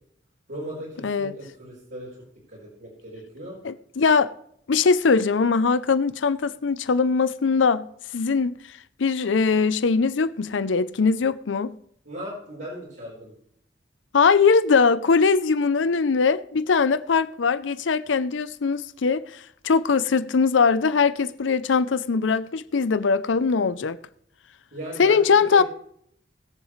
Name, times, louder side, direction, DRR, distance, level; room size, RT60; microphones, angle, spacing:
voice 1, 0.5-2.1 2.5-3.6 12.0-13.3 24.7-25.6, right 1 dB, 65° right, 4.6 m, -37 dB
voice 2, 1.0-1.4 3.6-4.3 4.7-7.9 8.1-8.5 9.0-11.7 14.1-24.0 25.0-25.6, left 5 dB, 85° left, 0.6 m, -21 dB
21.0 x 7.2 x 3.2 m
head